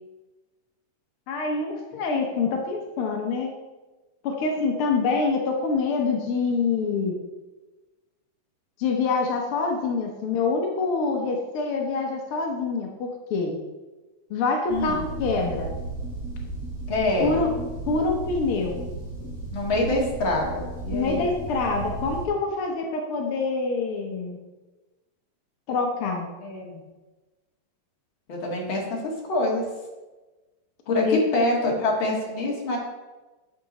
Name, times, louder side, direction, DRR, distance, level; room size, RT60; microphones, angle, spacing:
voice 1, 1.3-3.5 4.2-7.1 8.8-13.5 14.3-15.7 17.2-17.5 17.9-18.8 20.9-24.4 25.7-26.3 31.0-31.2, left 4 dB, 75° left, 1 dB, 1.2 m, -26 dB
voice 2, 14.7-15.0 16.9-17.4 19.5-21.2 26.4-26.9 28.3-29.6 30.9-32.8, left 2 dB, 45° left, -1 dB, 2.2 m, -25 dB
sound 1, 14.7-22.3, right 2 dB, 25° right, 3.1 m, -34 dB
10.5 x 6.9 x 4.1 m, 1.2 s
omnidirectional pair, 3.8 m